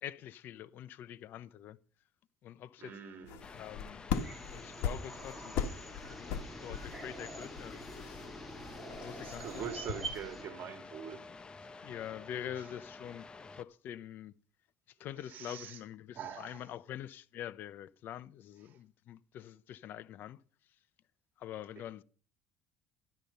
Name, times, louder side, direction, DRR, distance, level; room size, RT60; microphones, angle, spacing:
voice 1, 0.0-1.8 2.4-3.0 3.5-4.1 4.5-5.7 6.1-8.2 9.0-9.7 11.8-14.3 15.0-20.4 21.4-22.0, left 11 dB, 60° left, 0.7 m, -45 dB
voice 2, 2.8-3.5 9.2-11.2 12.5-12.7 15.3-15.8 16.1-16.7 18.7-18.8, right 8 dB, 50° right, 2.4 m, -44 dB
sound 1, 3.3-10.3, left 7 dB, 80° left, 1.6 m, -40 dB
sound 2, 3.4-13.6, left 4 dB, 25° left, 0.8 m, -51 dB
sound 3, 4.1-10.4, right 2 dB, 5° right, 3.0 m, -46 dB
12.5 x 11.5 x 5.4 m
cardioid pair, 125°, 4 cm